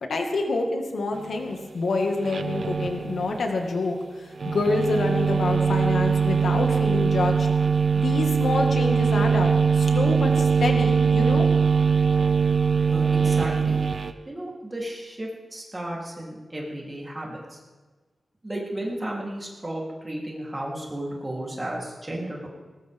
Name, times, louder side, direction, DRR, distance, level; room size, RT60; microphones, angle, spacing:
voice 1, 0.0-4.0 4.4-7.5 8.0-11.5, left 3 dB, 80° left, 3 dB, 2.0 m, -27 dB
sound 1, 2.2-3.4 4.4-14.1, right 6 dB, 60° right, 0.8 m, -22 dB
voice 2, 12.9-13.8 14.3-17.6 18.4-22.5, right 1 dB, 20° right, -3 dB, 3.5 m, -33 dB
20.0 x 19.5 x 3.7 m, 1.3 s
wide cardioid pair, 155°, 0 cm